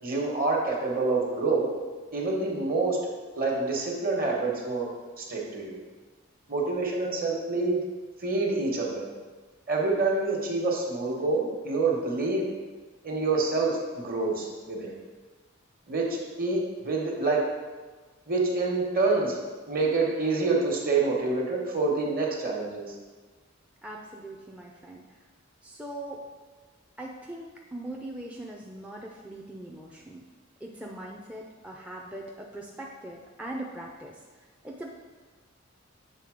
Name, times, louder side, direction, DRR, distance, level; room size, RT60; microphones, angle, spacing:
voice 1, 0.0-1.7 2.1-3.0 3.3-4.9 5.2-5.8 6.5-7.8 8.2-9.1 9.7-12.4 13.0-14.9 15.9-16.6 16.8-17.4 18.3-22.9, right 3 dB, 45° right, -1 dB, 1.3 m, -27 dB
voice 2, 23.8-25.1 25.6-26.2 27.0-30.2 30.6-34.2 34.6-34.9, right 1 dB, 5° right, -2 dB, 0.4 m, -40 dB
7.6 x 3.6 x 5.0 m, 1.4 s
head